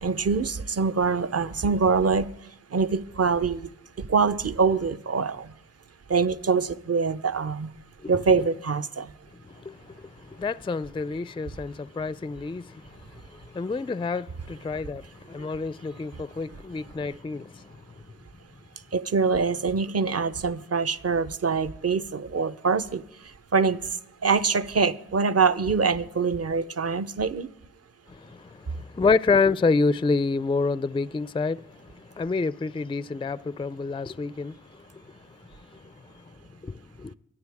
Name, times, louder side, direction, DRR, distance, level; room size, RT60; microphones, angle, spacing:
voice 1, 0.0-2.3 2.7-3.7 4.1-5.5 6.1-7.7 8.1-9.1 18.9-23.0 23.5-23.8 24.2-27.5, right 5 dB, 50° right, 0.9 m, -24 dB
voice 2, 9.4-17.7 28.1-35.2 35.7-35.9 36.6-37.1, left 4 dB, 15° left, 0.4 m, -28 dB
23.5 x 9.5 x 3.6 m
cardioid pair, 45°, 32 cm